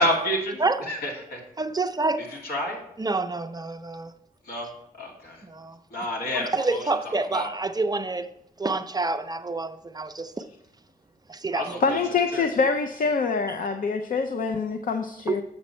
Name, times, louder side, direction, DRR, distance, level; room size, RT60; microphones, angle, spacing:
voice 1, 0.0-0.6 0.9-1.4 2.3-2.8 4.5-4.7 5.0-5.4 5.9-7.5 11.5-12.0 12.3-12.5, equal, 80° left, 2.5 m, -29 dB
voice 2, 1.6-2.2 3.0-4.1 5.4-5.8 6.3-8.3 8.6-10.4 11.3-11.8 15.3-15.4, right 3 dB, 25° right, 0.5 m, -28 dB
voice 3, 11.8-15.4, left 4 dB, 60° left, 0.6 m, -25 dB
7.4 x 6.1 x 4.3 m
cardioid pair, 85°, 16 cm